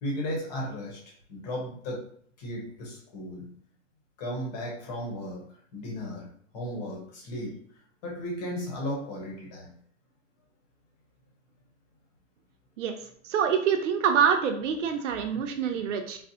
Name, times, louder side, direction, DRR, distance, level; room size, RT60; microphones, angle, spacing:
voice 1, 0.0-2.1 2.4-3.5 4.2-9.7 15.3-15.9, equal, 35° left, -1 dB, 0.9 m, -36 dB
voice 2, 13.2-16.2, right 7 dB, 80° right, 4 dB, 0.6 m, -26 dB
4.0 x 2.0 x 2.7 m, 0.62 s
supercardioid pair, 175°, 36 cm